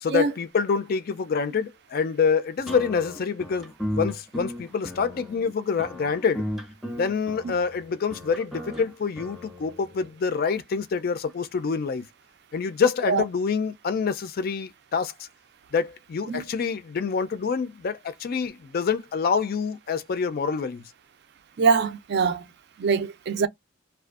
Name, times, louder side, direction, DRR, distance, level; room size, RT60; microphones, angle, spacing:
voice 1, 0.0-6.4 7.0-12.1 12.5-15.3 15.7-20.8, left 5 dB, 50° left, 0.4 m, -26 dB
sound 1, 2.7-10.1, equal, ahead, 0.7 m, -35 dB
voice 2, 21.6-22.5 22.8-23.5, right 5 dB, 55° right, 0.4 m, -23 dB
2.5 x 2.3 x 2.3 m
head